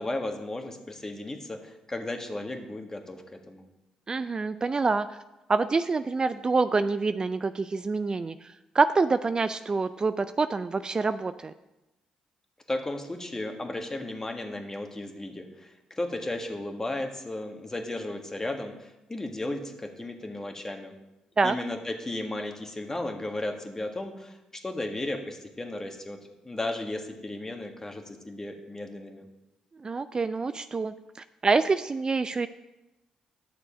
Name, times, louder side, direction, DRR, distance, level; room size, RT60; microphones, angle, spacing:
voice 1, 0.0-3.6 12.7-20.9 21.4-26.2 26.4-29.3, left 2 dB, 20° left, 4 dB, 1.6 m, -35 dB
voice 2, 4.1-5.2 5.5-11.5 21.4-21.5 29.8-30.9 31.4-32.5, right 4 dB, 35° right, 11 dB, 0.4 m, -26 dB
10.0 x 6.5 x 5.1 m, 0.98 s
supercardioid pair, 55°, 2 cm